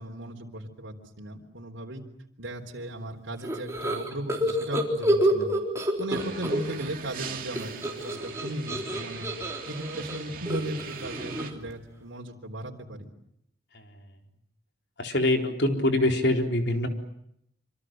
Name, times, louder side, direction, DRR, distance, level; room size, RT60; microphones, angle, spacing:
voice 1, 0.0-2.0 2.4-5.5 6.0-9.3 9.6-13.1, right 1 dB, 80° right, 1 dB, 3.7 m, -37 dB
sound 1, 3.4-6.9 7.2-11.7, equal, 15° right, 3.8 m, -28 dB
sound 2, 6.1-11.5, right 5 dB, 45° right, 2.6 m, -41 dB
voice 2, 15.0-16.9, left 1 dB, 60° left, 4 dB, 4.1 m, -24 dB
27.0 x 26.0 x 7.7 m, 0.74 s
head